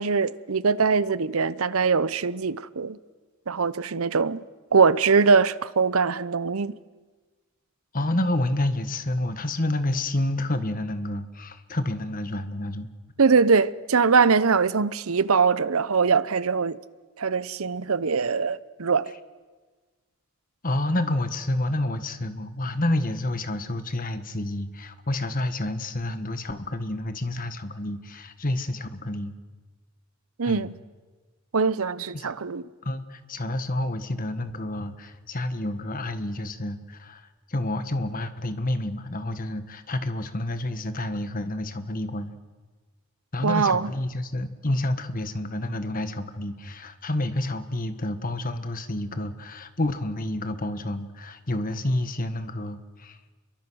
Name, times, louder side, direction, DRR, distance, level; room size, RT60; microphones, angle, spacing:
voice 1, 0.0-3.0 3.5-4.4 4.7-6.8 13.2-16.8 17.2-19.1 30.4-30.8 31.5-32.6 43.4-43.9, right 5 dB, 75° right, 0.8 m, -22 dB
voice 2, 7.9-12.9 20.6-29.3 30.4-30.7 32.1-32.3 32.8-42.4 43.3-53.2, left 1 dB, 40° left, 1.5 m, -29 dB
29.0 x 23.0 x 6.3 m
head